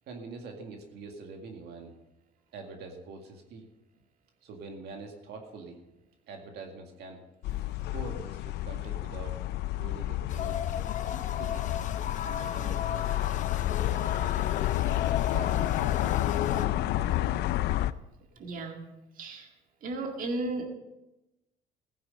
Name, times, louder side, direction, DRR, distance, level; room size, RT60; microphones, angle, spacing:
voice 1, 0.1-2.0 2.5-3.7 4.4-5.8 6.3-7.2 7.9-9.4 9.7-10.7 11.2-11.8 12.2-14.5 15.3-17.6, right 3 dB, 75° right, 3 dB, 2.0 m, -45 dB
sound 1, 7.4-17.9, left 14 dB, 75° left, 0.5 m, -30 dB
sound 2, 10.3-16.7, left 8 dB, 45° left, 0.8 m, -36 dB
voice 2, 18.4-18.8 19.2-19.5 19.8-20.7, right 2 dB, 55° right, 3 dB, 1.9 m, -34 dB
16.0 x 9.4 x 5.3 m, 0.97 s
cardioid pair, 110°, 17 cm